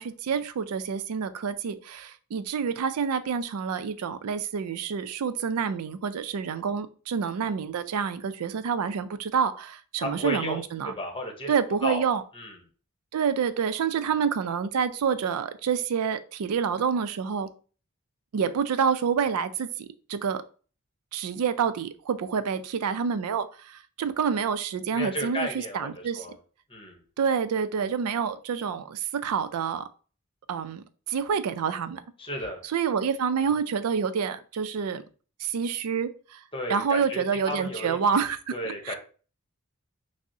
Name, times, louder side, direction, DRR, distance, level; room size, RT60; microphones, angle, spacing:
voice 1, 0.0-10.9 11.5-12.2 13.1-17.5 18.3-20.4 21.1-26.3 27.2-29.9 30.5-32.0 32.6-35.0 35.4-36.4 36.7-39.0, right 6 dB, 90° right, 12 dB, 0.4 m, -28 dB
voice 2, 10.0-11.5 11.8-12.1 12.3-12.5 24.9-26.3 26.7-27.0 32.2-32.6 36.5-38.0 38.5-39.0, left 1 dB, 25° left, 3 dB, 0.9 m, -33 dB
5.9 x 2.0 x 2.7 m, 0.39 s
head